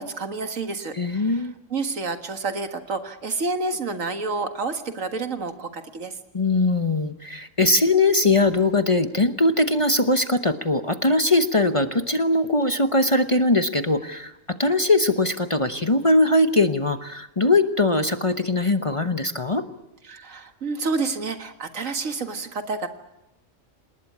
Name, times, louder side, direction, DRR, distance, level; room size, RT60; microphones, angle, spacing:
voice 1, 0.0-1.4 1.7-6.2 20.1-22.9, right 3 dB, 75° right, 7 dB, 2.0 m, -29 dB
voice 2, 0.9-1.5 6.3-19.6, left 2 dB, 25° left, 8 dB, 1.0 m, -21 dB
27.5 x 20.0 x 8.6 m, 0.91 s
omnidirectional pair, 1.4 m